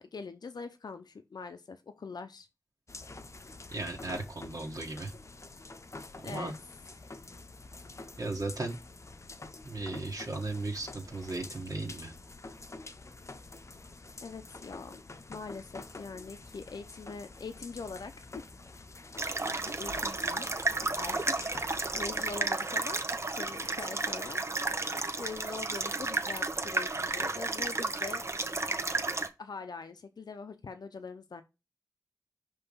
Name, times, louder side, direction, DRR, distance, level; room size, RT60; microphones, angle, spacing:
voice 1, 0.0-2.5 6.2-6.5 7.0-7.1 14.2-15.0 15.3-18.4 19.5-20.5 21.0-21.6 21.9-23.0 23.3-24.4 25.2-28.3 28.7-29.0 29.4-31.4, left 4 dB, 85° left, 0.7 m, -43 dB
sound 1, 2.9-22.4, left 3 dB, 45° left, 0.7 m, -47 dB
voice 2, 3.7-5.1 6.3-6.5 8.2-8.8 9.6-12.1, right 2 dB, 60° right, 1.6 m, -36 dB
sound 2, 19.2-29.3, right 3 dB, 45° right, 0.9 m, -32 dB
5.6 x 3.4 x 5.5 m
wide cardioid pair, 60°, 7 cm